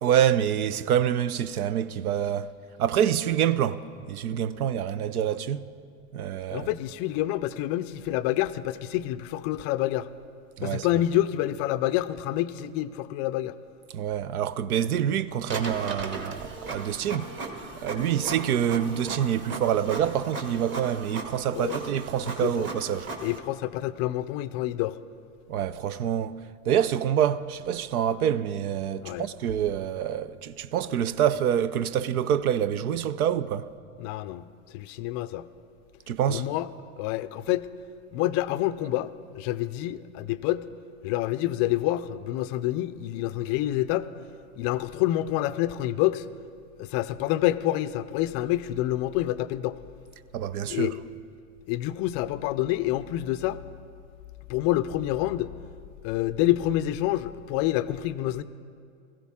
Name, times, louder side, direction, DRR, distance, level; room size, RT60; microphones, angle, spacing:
voice 1, 0.0-2.5 2.8-5.7 6.1-6.7 10.6-10.9 13.9-17.3 17.8-23.1 25.5-26.4 26.7-33.7 36.1-36.5 50.3-50.9, right 9 dB, 85° right, 0.6 m, -26 dB
voice 2, 6.5-10.1 10.6-13.5 21.5-21.8 22.4-22.7 23.2-25.0 29.0-29.3 34.0-35.5 36.3-36.7 37.0-37.7 38.1-40.6 41.0-44.1 44.6-46.2 46.8-49.8 50.7-50.9 51.7-53.6 54.5-55.5 56.0-58.4, left 14 dB, 40° left, 0.4 m, -27 dB
Printer, 15.5-23.4, right 3 dB, 25° right, 1.4 m, -37 dB
17.0 x 15.0 x 3.6 m
hypercardioid pair, 110°, 43 cm